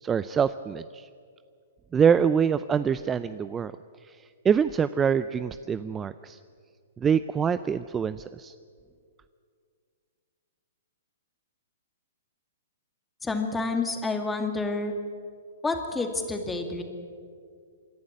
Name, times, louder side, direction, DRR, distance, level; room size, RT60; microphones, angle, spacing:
voice 1, 0.0-1.1 1.9-3.7 4.1-4.2 4.4-6.4 7.0-8.5, right 7 dB, 15° right, 14 dB, 0.4 m, -25 dB
voice 2, 13.2-14.9 15.6-16.8, left 3 dB, 10° left, 5 dB, 2.3 m, -29 dB
27.0 x 11.5 x 9.6 m, 2.2 s
hypercardioid pair, 125°, 0 cm